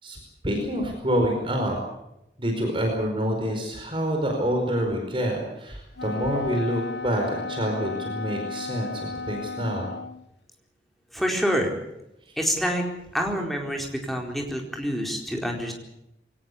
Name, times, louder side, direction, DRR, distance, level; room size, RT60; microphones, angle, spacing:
voice 1, 0.4-1.8 2.4-9.9, equal, 30° right, 2 dB, 5.0 m, -27 dB
Wind instrument woodwind instrument, 6.0-10.3, left 3 dB, 70° left, 1.1 m, -34 dB
voice 2, 11.1-11.7 12.4-12.8 13.1-15.7, equal, ahead, 1 dB, 4.3 m, -27 dB
23.0 x 18.5 x 8.5 m, 0.83 s
head